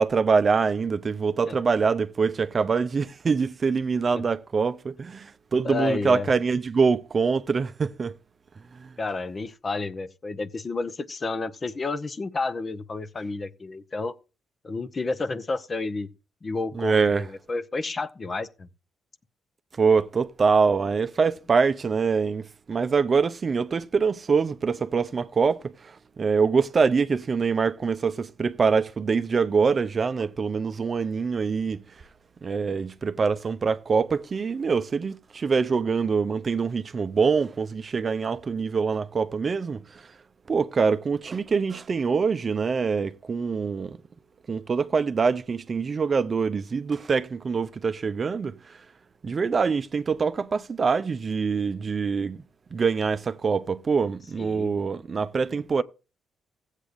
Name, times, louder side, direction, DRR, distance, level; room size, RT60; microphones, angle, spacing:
voice 1, 0.0-8.2 8.8-8.9 16.7-17.3 19.8-31.8 32.4-40.0 40.5-44.0 44.5-48.8 49.2-52.4 52.7-55.8, right 5 dB, 40° right, 0.5 m, -24 dB
voice 2, 5.6-6.3 9.0-14.1 14.6-16.1 16.4-18.7 54.4-54.7, left 3 dB, 35° left, 0.8 m, -31 dB
15.5 x 8.2 x 2.5 m
cardioid pair, 90°, 0 cm